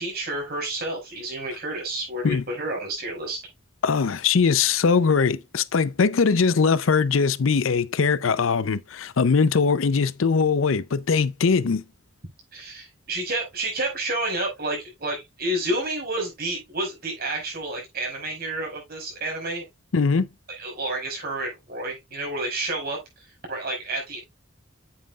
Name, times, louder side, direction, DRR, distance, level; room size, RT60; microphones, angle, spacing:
voice 1, 0.0-3.4 12.5-19.7 20.6-24.2, right 1 dB, 50° right, 5.4 m, -30 dB
voice 2, 3.8-11.8 19.9-20.3, left 5 dB, 75° left, 0.5 m, -21 dB
9.0 x 7.5 x 2.4 m
head